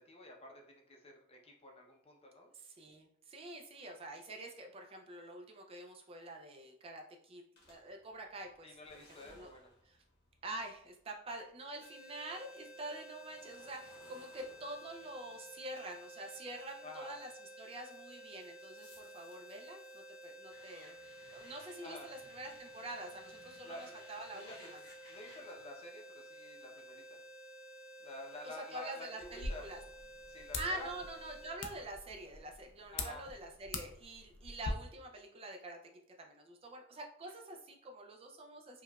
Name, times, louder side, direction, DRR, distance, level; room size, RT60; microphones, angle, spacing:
voice 1, 0.1-2.5 8.6-9.7 16.8-17.1 21.8-22.1 23.6-24.0 24.3-24.7 25.1-27.2 28.0-29.6 30.3-30.9 32.9-33.2, left 1 dB, 30° left, 1 dB, 0.6 m, -50 dB
voice 2, 2.5-8.7 9.3-9.5 9.8-10.0 10.4-21.0 21.3-24.8 28.3-29.8 30.6-38.8, right 1 dB, 30° right, 2 dB, 0.4 m, -46 dB
sound 1, 7.6-11.8 12.2-17.1 17.7-25.7, left 2 dB, 55° left, 1.0 m, -62 dB
sound 2, 11.8-31.5, right 1 dB, 5° right, 0.8 m, -53 dB
sound 3, 29.2-34.7, left 3 dB, 80° left, 0.5 m, -44 dB
4.6 x 2.3 x 2.2 m, 0.67 s
head